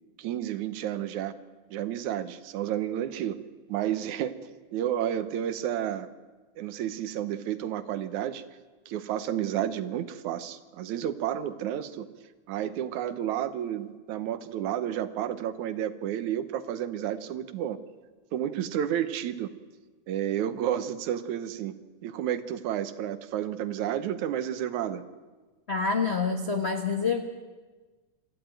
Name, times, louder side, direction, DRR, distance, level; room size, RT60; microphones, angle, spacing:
voice 1, 0.2-1.3 1.7-3.4 3.7-4.3 4.7-6.1 6.6-8.4 8.9-12.1 12.5-17.8 18.3-19.5 20.1-21.7 22.0-25.0, right 10 dB, 75° right, 12 dB, 2.3 m, -31 dB
voice 2, 25.7-27.2, left 5 dB, 80° left, 3 dB, 0.5 m, -27 dB
26.5 x 14.0 x 9.1 m, 1.3 s
omnidirectional pair, 3.6 m